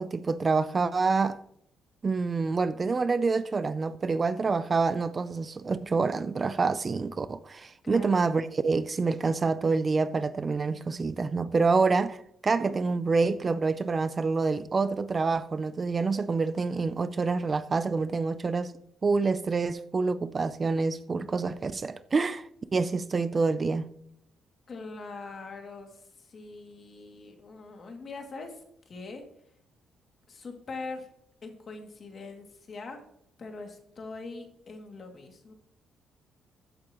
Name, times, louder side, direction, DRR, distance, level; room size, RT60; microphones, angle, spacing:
voice 1, 0.0-1.4 2.0-18.7 19.0-23.9, right 4 dB, 30° right, 0.5 m, -27 dB
voice 2, 7.8-8.2 24.7-28.6 28.9-29.2 30.3-31.1 31.4-33.0 33.4-35.5, left 3 dB, 45° left, 2.4 m, -42 dB
15.0 x 8.5 x 3.0 m
cardioid pair, 105°, 0 cm